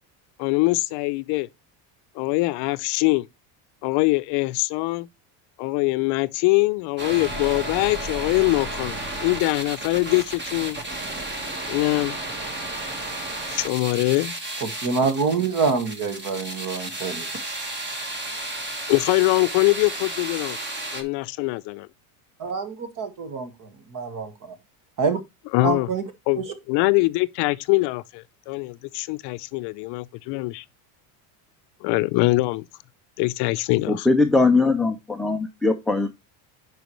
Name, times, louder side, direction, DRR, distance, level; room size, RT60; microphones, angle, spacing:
voice 1, 0.4-1.5 2.2-3.3 3.8-5.1 5.6-8.9 9.2-10.8 11.7-12.2 13.5-14.3 18.9-20.6 20.9-21.9 25.5-25.9 26.3-30.6 31.8-32.6 33.2-34.1, left 22 dB, 60° left, 0.6 m, -23 dB
sound 1, 7.0-21.0, right 2 dB, 20° right, 1.6 m, -33 dB
voice 2, 14.8-17.3 22.4-23.5 23.9-24.5 25.0-25.2 25.6-26.0 26.4-26.5, right 5 dB, 40° right, 1.7 m, -26 dB
voice 3, 33.9-36.2, left 3 dB, ahead, 0.3 m, -20 dB
10.0 x 4.8 x 3.1 m
cardioid pair, 130°, 47 cm